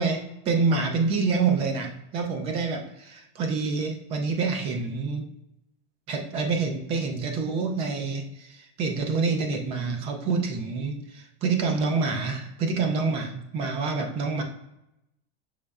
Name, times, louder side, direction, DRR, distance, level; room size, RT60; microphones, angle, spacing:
voice 1, 0.0-5.2 6.1-11.0 11.4-14.4, right 4 dB, 20° right, 4 dB, 0.3 m, -27 dB
6.4 x 3.0 x 2.3 m, 0.86 s
supercardioid pair, 170°, 29 cm